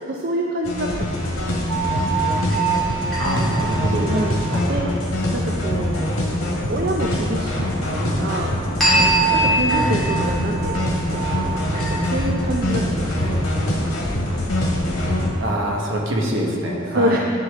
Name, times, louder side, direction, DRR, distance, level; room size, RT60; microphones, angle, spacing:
voice 1, 0.1-1.6 4.0-4.4 4.7-4.9 5.3-6.0 6.7-8.6 8.9-13.5 16.8-17.2, right 1 dB, 45° right, 0 dB, 0.5 m, -27 dB
sound 1, 0.6-15.3, left 1 dB, 80° left, 1.7 m, -23 dB
sound 2, 1.7-4.5 8.8-12.4, right 3 dB, ahead, 2.0 m, -23 dB
voice 2, 3.2-4.1 4.5-5.0 9.7-9.9 15.4-17.2, right 1 dB, 65° right, -1 dB, 1.3 m, -25 dB
10.5 x 6.6 x 3.6 m, 2.5 s
head